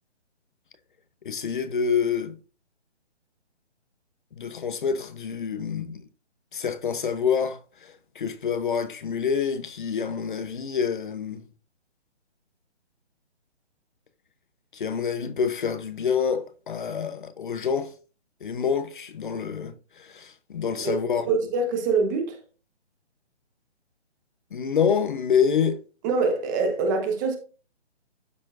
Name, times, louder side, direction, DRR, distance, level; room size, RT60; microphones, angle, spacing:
voice 1, 1.2-2.3 4.4-6.0 6.5-11.4 14.7-17.9 18.4-21.3 24.5-25.8, left 6 dB, 45° left, 1.0 m, -27 dB
voice 2, 21.3-22.4 26.0-27.4, right 4 dB, 15° right, 1.1 m, -24 dB
12.5 x 4.2 x 2.5 m
figure-of-eight pair, 150°, 35 cm